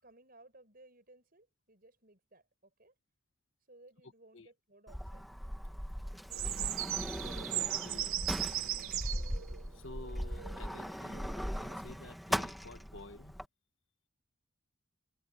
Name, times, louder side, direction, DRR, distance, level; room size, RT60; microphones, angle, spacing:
voice 1, 0.0-2.9 3.7-5.3, right 2 dB, 45° right, 6.0 m, -60 dB
Sliding door, 4.9-13.4, equal, ahead, 1.0 m, -39 dB
sound 1, 6.3-11.7, right 13 dB, 75° right, 1.0 m, -38 dB
voice 2, 7.5-8.9 9.7-11.3 11.6-13.4, left 2 dB, 65° left, 1.7 m, -51 dB
head